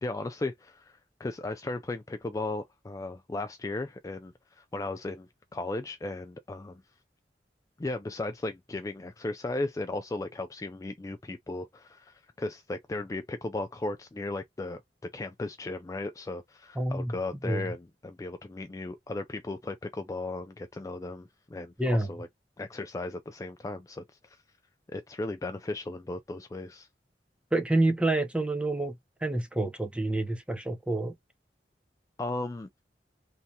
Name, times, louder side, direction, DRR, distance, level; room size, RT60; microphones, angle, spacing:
voice 1, 0.0-6.8 7.8-22.3 22.6-24.4 24.9-26.9 32.2-32.7, left 2 dB, 20° left, 0.3 m, -36 dB
voice 2, 16.8-17.2 17.4-17.6 21.8-22.1 27.5-29.0 29.2-31.1, right 2 dB, 5° right, 0.7 m, -28 dB
3.3 x 2.8 x 4.1 m
head